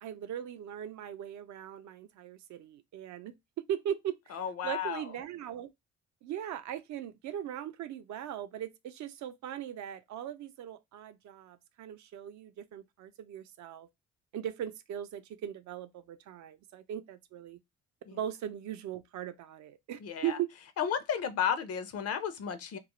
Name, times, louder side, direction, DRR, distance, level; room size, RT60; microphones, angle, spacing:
voice 1, 0.0-4.4 4.6-5.7 6.2-13.9 14.3-17.6 18.1-20.5, right 10 dB, 70° right, 0.4 m, -39 dB
voice 2, 4.3-5.1 18.1-18.2 20.0-20.4 20.8-22.8, left 8 dB, 55° left, 0.5 m, -33 dB
2.3 x 2.0 x 2.9 m
cardioid pair, 90°, 30 cm